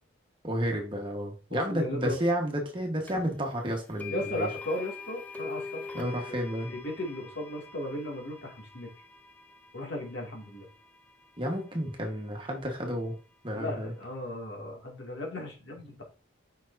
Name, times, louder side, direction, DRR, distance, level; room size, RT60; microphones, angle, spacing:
voice 1, 0.4-4.5 5.9-6.7 11.4-13.1 13.4-13.9, equal, 25° right, 1 dB, 1.3 m, -31 dB
voice 2, 1.5-2.2 4.1-6.2 6.7-8.9 9.7-10.7 13.5-16.0, left 1 dB, 60° left, -1 dB, 2.3 m, -36 dB
sound 1, 3.1-3.2 4.0-12.0, left 4 dB, 10° left, 0.4 m, -44 dB
6.3 x 5.7 x 2.7 m, 0.33 s
head